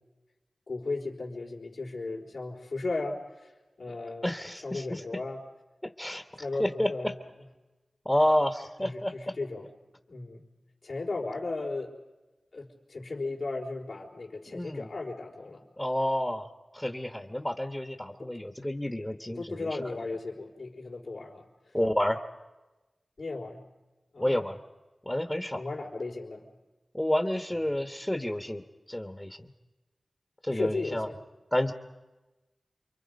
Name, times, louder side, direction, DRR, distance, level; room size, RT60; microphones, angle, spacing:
voice 1, 0.7-3.5 3.8-4.3 4.6-5.4 6.4-7.1 8.8-9.7 10.1-10.4 10.8-11.9 12.5-15.6 18.2-18.3 19.3-21.8 23.2-23.6 24.1-24.4 25.6-26.5 30.5-31.1, left 3 dB, 80° left, -3 dB, 4.0 m, -36 dB
voice 2, 4.2-5.0 5.8-6.2 6.6-7.1 8.0-9.3 14.5-14.9 15.8-16.5 16.7-19.8 21.7-22.2 24.2-24.6 25.0-25.6 26.9-29.5 30.4-31.1 31.5-31.7, left 1 dB, 15° left, 6 dB, 1.2 m, -29 dB
29.0 x 23.5 x 5.3 m, 1.1 s
wide cardioid pair, 60°, 0 cm